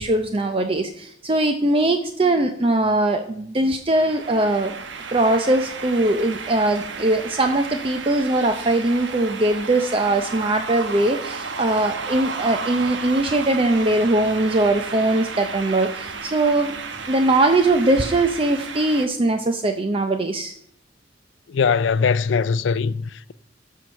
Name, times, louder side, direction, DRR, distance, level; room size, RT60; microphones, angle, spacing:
voice 1, 0.0-4.8 5.1-16.7 17.1-20.5, right 2 dB, 30° right, 0.6 m, -21 dB
sound 1, 3.9-19.1, right 4 dB, 90° right, 1.1 m, -33 dB
voice 2, 21.5-23.3, left 5 dB, 90° left, 0.4 m, -21 dB
13.5 x 4.6 x 6.3 m
head